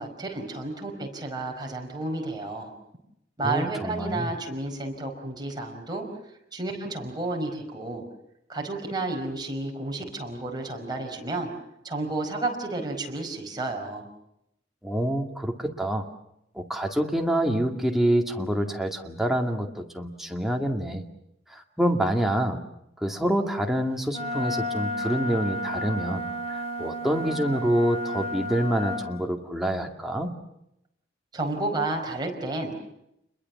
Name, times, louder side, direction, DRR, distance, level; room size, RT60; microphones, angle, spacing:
voice 1, 0.0-2.7 3.4-6.1 6.5-8.0 8.5-11.5 11.8-14.1 31.3-32.9, right 2 dB, 20° right, 1 dB, 5.2 m, -31 dB
voice 2, 3.4-4.3 14.8-16.1 16.5-21.0 21.5-22.6 23.0-30.3, right 1 dB, ahead, 2 dB, 2.3 m, -27 dB
Wind instrument woodwind instrument, 24.1-29.0, left 1 dB, 35° left, 4.4 m, -32 dB
29.5 x 22.0 x 7.3 m, 0.80 s
head